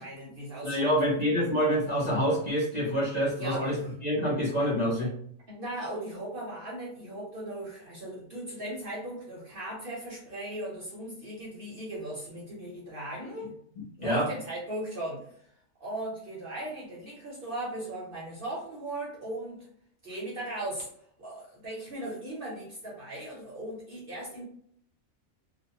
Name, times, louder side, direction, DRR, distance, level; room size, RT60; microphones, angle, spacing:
voice 1, 0.0-1.2 3.4-3.9 5.5-13.5 14.0-15.5 15.8-19.7 20.0-20.9 21.2-24.4, right 1 dB, 50° right, -4 dB, 0.8 m, -38 dB
voice 2, 0.6-5.1 14.0-14.3, equal, 40° left, -6 dB, 0.8 m, -27 dB
2.5 x 2.1 x 2.7 m, 0.64 s
omnidirectional pair, 1.4 m